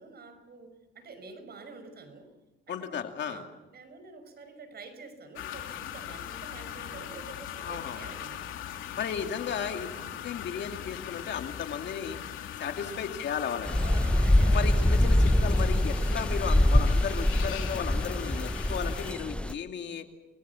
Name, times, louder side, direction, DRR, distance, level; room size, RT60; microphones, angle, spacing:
voice 1, 0.0-2.3 2.7-8.5 9.9-10.2 12.8-13.0 13.8-14.7 19.3-19.6, right 4 dB, 55° right, 9 dB, 5.9 m, -48 dB
voice 2, 2.7-3.4 7.6-8.0 9.0-9.9 10.2-12.2 12.6-13.8 14.4-20.1, left 7 dB, 65° left, 5 dB, 2.6 m, -35 dB
sound 1, 5.4-19.1, left 10 dB, 90° left, 2.9 m, -40 dB
sound 2, 13.7-19.5, left 1 dB, 5° left, 0.8 m, -24 dB
28.5 x 21.5 x 7.1 m, 1.0 s
cardioid pair, 90°, 20 cm